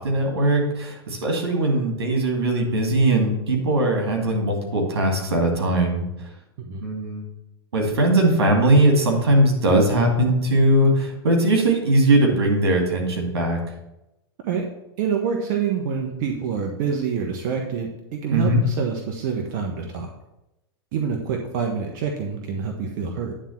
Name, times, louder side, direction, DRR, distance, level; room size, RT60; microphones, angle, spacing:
voice 1, 0.0-6.3 6.8-7.3 7.7-13.6 18.3-18.6, right 1 dB, 90° right, 2 dB, 2.4 m, -20 dB
voice 2, 15.0-20.1 20.9-23.3, right 6 dB, 60° right, 2 dB, 1.2 m, -26 dB
10.0 x 3.7 x 7.2 m, 0.92 s
hypercardioid pair, 110°, 13 cm